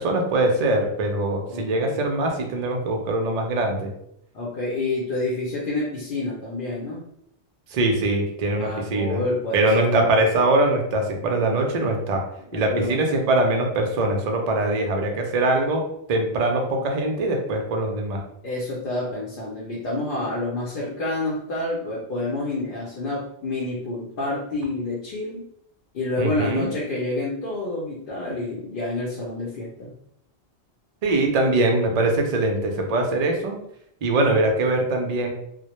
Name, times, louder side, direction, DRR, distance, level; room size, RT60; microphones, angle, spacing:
voice 1, 0.0-3.9 7.7-9.2 9.5-12.2 12.5-15.8 16.1-18.2 26.2-26.7 31.0-33.6 34.0-35.3, right 2 dB, 60° right, 2 dB, 0.4 m, -22 dB
voice 2, 1.5-2.0 4.3-7.0 8.6-10.1 12.5-13.1 18.4-25.4 25.9-29.9, left 2 dB, 60° left, -6 dB, 0.7 m, -28 dB
2.1 x 2.1 x 2.9 m, 0.73 s
omnidirectional pair, 1.1 m